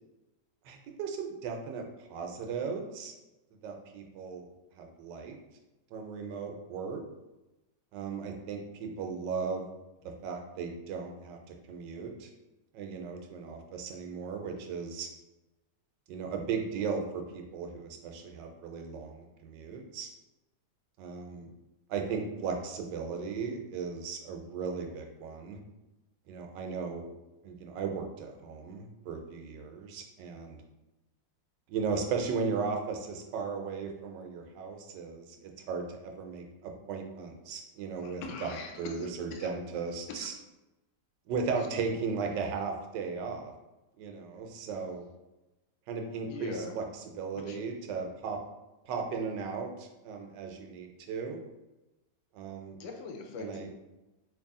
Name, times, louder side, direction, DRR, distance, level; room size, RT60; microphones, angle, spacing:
voice 1, 0.6-3.1 3.6-4.5 4.8-5.4 5.9-7.0 7.9-9.7 10.0-12.3 12.7-15.1 16.1-20.1 21.0-21.5 21.9-25.6 26.3-27.0 27.4-30.6 31.7-40.3 41.3-43.5 44.0-45.0 45.9-46.8 47.2-48.4 48.8-51.4 52.3-52.8 53.4-53.7, right 5 dB, 80° right, 3 dB, 1.2 m, -36 dB
voice 2, 38.0-39.5 40.1-40.3 41.7-42.0 46.2-46.8 47.3-47.6 52.8-53.7, left 4 dB, 80° left, 3 dB, 1.2 m, -42 dB
3.2 x 2.6 x 3.6 m, 1.0 s
omnidirectional pair, 1.9 m